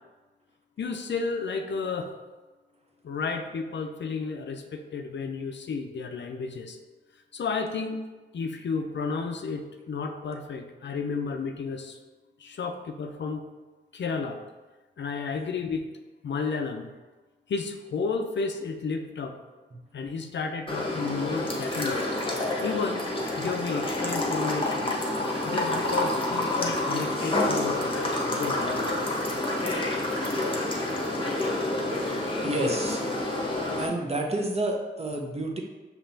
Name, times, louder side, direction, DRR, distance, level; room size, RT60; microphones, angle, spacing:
voice 1, 0.8-2.1 3.0-6.8 7.3-8.0 8.3-12.0 12.4-13.4 13.9-14.4 15.0-15.9 16.2-16.9 17.5-19.4 19.9-22.0 22.6-23.0 23.4-25.0 25.4-29.0, left 4 dB, 60° left, 4 dB, 0.5 m, -32 dB
sound 1, 20.7-33.9, left 2 dB, 25° left, 0.9 m, -28 dB
voice 2, 32.4-33.0 33.8-35.6, right 1 dB, 30° right, 1 dB, 0.7 m, -29 dB
5.3 x 2.9 x 2.7 m, 1.2 s
cardioid pair, 50°, 21 cm